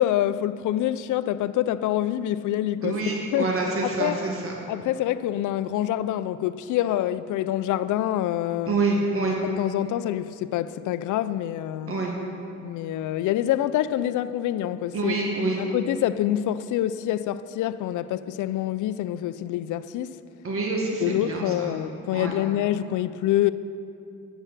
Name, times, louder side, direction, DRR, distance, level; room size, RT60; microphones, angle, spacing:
voice 1, 0.0-3.0 3.3-3.5 3.8-4.2 4.7-8.8 9.4-11.9 12.6-15.2 15.6-20.2 21.0-23.5, left 12 dB, 80° left, 0.5 m, -26 dB
voice 2, 2.8-4.6 8.7-9.4 11.9-12.1 14.9-15.6 20.4-21.8 22.1-22.4, right 3 dB, 45° right, 1.9 m, -26 dB
11.5 x 9.2 x 6.7 m
cardioid pair, 90°, 30 cm